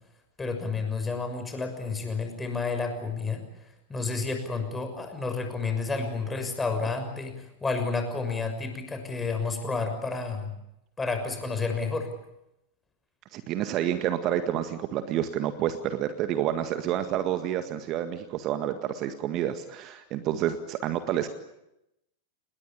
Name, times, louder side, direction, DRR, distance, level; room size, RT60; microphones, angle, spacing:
voice 1, 0.4-10.5 11.0-12.1, left 4 dB, 15° left, 6 dB, 6.4 m, -30 dB
voice 2, 13.3-21.3, right 11 dB, 35° right, 9 dB, 1.8 m, -29 dB
28.5 x 21.0 x 8.5 m, 0.86 s
figure-of-eight pair, 90°, 0 cm